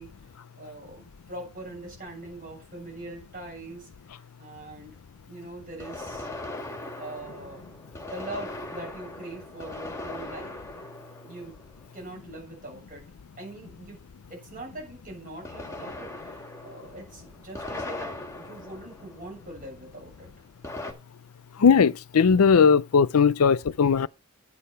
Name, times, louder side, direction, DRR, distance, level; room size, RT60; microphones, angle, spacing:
voice 1, 0.0-3.9 4.4-5.0 5.3-6.3 6.9-7.8 8.1-10.6 11.2-11.6 11.9-13.1 13.4-14.0 14.3-20.3, right 2 dB, 40° right, 7.4 m, -42 dB
sound 1, 1.9-2.0 5.8-12.3 15.4-19.7 20.6-20.9, left 2 dB, 15° left, 2.1 m, -39 dB
voice 2, 21.6-24.1, left 6 dB, 85° left, 0.5 m, -18 dB
10.0 x 8.6 x 5.6 m
head